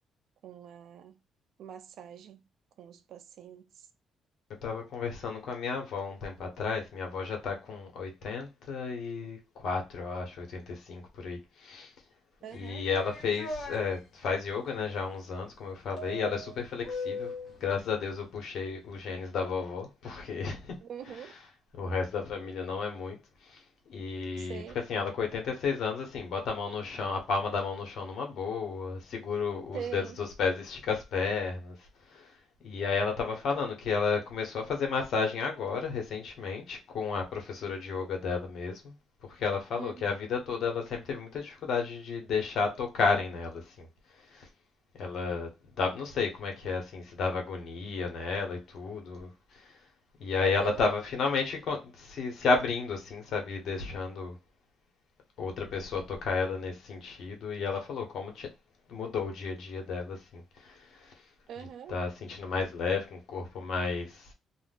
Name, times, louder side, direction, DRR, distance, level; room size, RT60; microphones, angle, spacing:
voice 1, 0.4-1.2 1.6-2.4 2.8-3.9 12.4-12.8 20.8-21.3 24.4-24.8 29.7-30.2 39.8-39.9 50.4-50.8 61.5-62.0, right 9 dB, 75° right, 0.3 m, -42 dB
voice 2, 4.6-11.9 12.5-17.3 17.6-20.8 21.1-21.3 21.7-24.6 24.9-31.7 32.1-32.3 32.6-39.0 39.3-43.9 44.2-44.5 45.0-45.5 45.7-49.8 50.2-54.4 55.4-58.5 58.9-61.1 61.9-64.3, left 5 dB, 70° left, 1.1 m, -32 dB
sound 1, 12.5-13.8 16.0-17.6, left 2 dB, 45° left, 1.1 m, -39 dB
2.4 x 2.4 x 3.5 m
cardioid pair, 90°, 0 cm